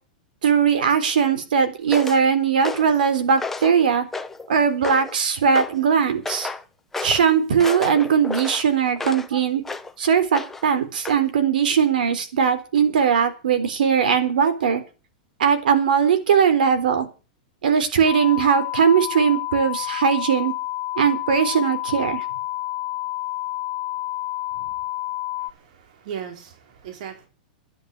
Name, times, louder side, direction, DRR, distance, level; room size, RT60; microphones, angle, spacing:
voice 1, 0.4-4.1 4.5-6.5 7.0-9.6 10.0-14.8 15.4-17.1 17.6-20.5 21.0-22.2, right 7 dB, 85° right, 10 dB, 3.7 m, -19 dB
sound 1, 1.9-2.2 2.6-3.0 3.4-3.8 4.1-4.5 4.8-5.2 5.6-5.8 6.3-6.6 6.9-7.2 7.6-9.3 9.6-9.9 10.3-10.7 11.1-11.2, left 3 dB, 5° left, 0.9 m, -32 dB
sound 2, 18.0-25.5, left 16 dB, 35° left, 1.1 m, -29 dB
voice 2, 25.4-27.3, right 8 dB, 60° right, 4 dB, 4.2 m, -37 dB
11.5 x 10.5 x 8.2 m, 0.34 s
supercardioid pair, 155°, 5 cm